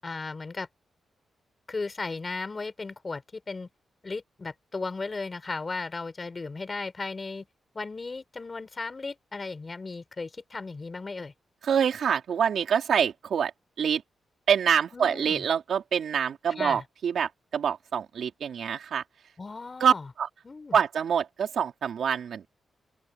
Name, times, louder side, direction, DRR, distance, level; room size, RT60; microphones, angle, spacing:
voice 1, 0.0-0.7 1.7-3.7 4.0-7.5 7.7-11.3 14.9-15.4 16.6-16.8 19.4-20.0 20.4-20.8, left 3 dB, 30° left, 6.2 m, -36 dB
voice 2, 11.6-13.5 13.8-14.0 14.5-19.0 19.8-20.3 20.7-22.5, right 7 dB, 75° right, 3.5 m, -26 dB
open air
wide cardioid pair, 125°, 0 cm